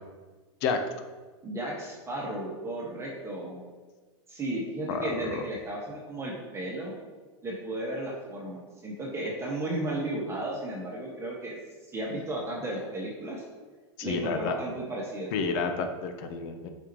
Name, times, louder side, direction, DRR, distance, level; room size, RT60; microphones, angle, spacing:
voice 1, 1.4-3.6 4.3-6.9 7.4-11.6 11.9-13.4 14.0-15.3, right 1 dB, 15° right, -3 dB, 1.8 m, -34 dB
voice 2, 4.9-5.4 14.0-14.6 15.3-16.7, left 5 dB, 55° left, 6 dB, 1.0 m, -30 dB
8.7 x 5.5 x 3.1 m, 1.3 s
hypercardioid pair, 110°, 15 cm